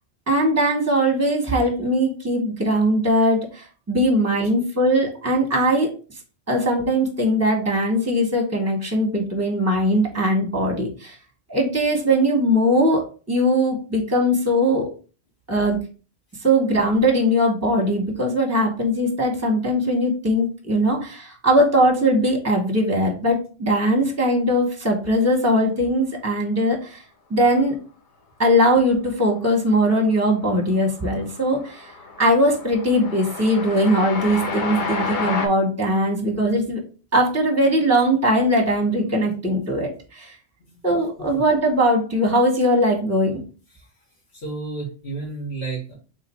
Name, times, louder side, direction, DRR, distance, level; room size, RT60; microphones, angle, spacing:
voice 1, 0.3-5.9 6.5-11.1 11.5-14.9 15.5-15.8 16.4-27.0 27.3-27.7 28.4-31.9 32.2-36.8 37.1-40.3 40.8-43.4, equal, 15° right, 1 dB, 1.1 m, -20 dB
Train, 29.8-30.3 30.6-35.5, left 4 dB, 50° left, 0.8 m, -30 dB
voice 2, 44.3-45.9, right 3 dB, 80° left, -5 dB, 2.0 m, -32 dB
3.5 x 3.3 x 4.2 m, 0.37 s
omnidirectional pair, 1.1 m